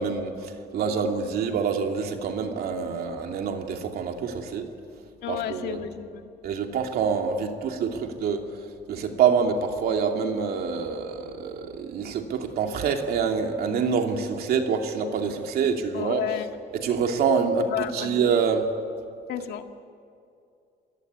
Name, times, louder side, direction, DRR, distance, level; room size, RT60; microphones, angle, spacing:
voice 1, 0.0-4.7 5.3-5.8 6.4-16.2 16.7-18.7, right 6 dB, 65° right, 4 dB, 2.7 m, -26 dB
voice 2, 5.2-6.3 15.9-16.5 17.7-18.2 19.3-19.7, left 10 dB, 75° left, 6 dB, 1.8 m, -32 dB
27.5 x 18.0 x 9.7 m, 2.4 s
cardioid pair, 110°, 17 cm